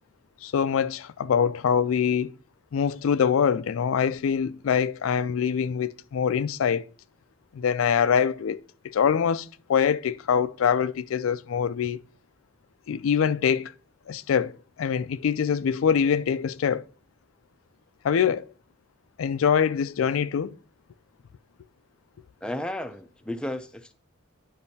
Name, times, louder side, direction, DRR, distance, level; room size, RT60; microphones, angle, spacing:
voice 1, 0.4-2.3 2.7-6.8 7.5-8.6 8.8-12.0 12.9-13.7 14.1-14.5 14.8-16.9 18.0-18.5 19.2-20.6, left 7 dB, 85° left, 0.4 m, -24 dB
voice 2, 22.4-23.9, left 1 dB, 5° left, 0.4 m, -33 dB
10.5 x 5.3 x 2.7 m
head